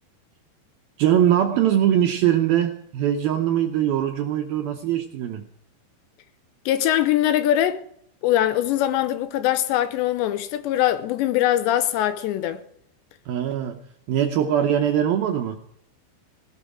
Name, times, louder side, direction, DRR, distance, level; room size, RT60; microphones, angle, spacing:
voice 1, 1.0-5.4 13.3-15.6, right 10 dB, 80° right, 2.2 m, -22 dB
voice 2, 6.7-7.8 8.2-12.6, left 12 dB, 80° left, 2.8 m, -22 dB
17.0 x 12.5 x 4.9 m
omnidirectional pair, 5.4 m